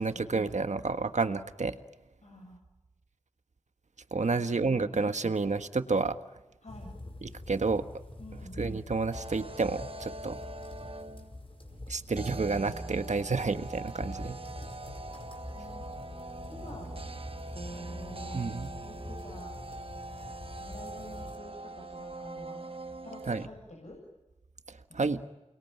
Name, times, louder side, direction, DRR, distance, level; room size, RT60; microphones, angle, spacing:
voice 1, 0.0-1.8 4.1-6.2 7.2-7.8 8.6-10.4 11.9-14.4 18.3-18.7 23.3-23.4 24.7-25.2, right 4 dB, 85° right, 9 dB, 1.5 m, -30 dB
voice 2, 2.2-2.6 4.3-4.4 4.7-5.0 6.6-7.0 8.2-8.6 15.5-15.9 16.5-16.9 17.7-18.5 18.8-19.5 20.6-22.6 23.0-24.0 24.9-25.0, left 1 dB, 75° left, -1 dB, 7.6 m, -48 dB
sound 1, 6.7-21.4, left 2 dB, 50° left, 4.9 m, -45 dB
sound 2, 9.1-11.4 12.2-23.5, right 2 dB, 50° right, 1.3 m, -42 dB
29.5 x 22.0 x 9.1 m, 1.0 s
wide cardioid pair, 45°, 12 cm